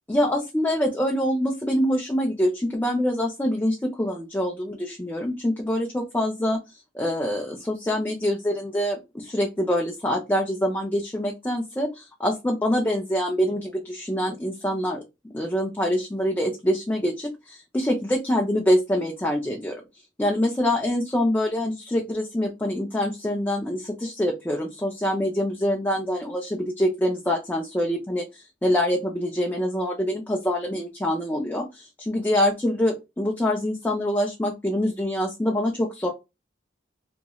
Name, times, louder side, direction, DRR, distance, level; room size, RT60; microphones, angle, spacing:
voice 1, 0.1-6.6 6.9-15.0 15.3-19.8 20.2-36.1, equal, 10° left, 0 dB, 0.5 m, -25 dB
2.9 x 2.8 x 2.3 m, 0.23 s
head